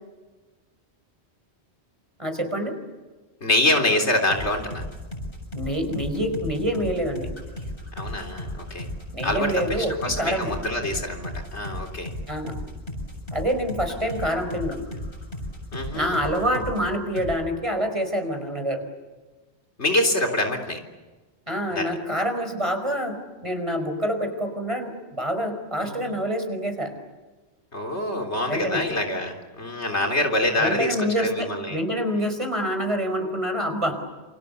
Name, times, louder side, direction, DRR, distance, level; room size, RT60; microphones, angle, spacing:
voice 1, 2.2-2.7 5.5-7.3 9.1-10.5 12.3-12.5 13.3-14.8 15.9-18.8 21.5-23.2 23.4-26.9 28.5-28.8 30.6-34.0, equal, 30° right, 6 dB, 5.1 m, -26 dB
voice 2, 3.4-4.8 8.0-8.9 9.2-12.1 15.7-16.2 19.8-20.8 21.7-22.0 25.8-26.1 27.7-31.8, left 1 dB, 85° left, 3 dB, 4.0 m, -25 dB
sound 1, 4.3-16.9 17.2-17.4, left 1 dB, 55° left, 7.7 m, -34 dB
28.5 x 28.0 x 7.1 m, 1.2 s
omnidirectional pair, 1.1 m